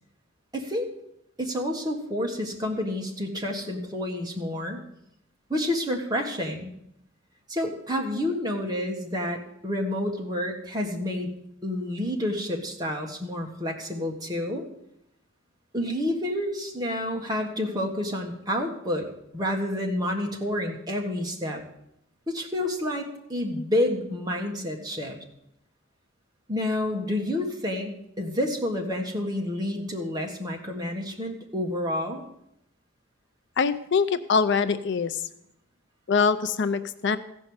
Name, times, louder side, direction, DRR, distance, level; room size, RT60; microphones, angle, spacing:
voice 1, 0.5-0.9 1.4-4.8 5.5-6.7 7.5-11.3 11.6-14.6 15.7-21.6 22.3-25.2 26.5-32.2, left 1 dB, 20° right, 1 dB, 1.5 m, -29 dB
voice 2, 33.6-35.2 36.1-37.2, left 5 dB, 55° left, 10 dB, 0.5 m, -24 dB
15.0 x 5.3 x 7.9 m, 0.78 s
head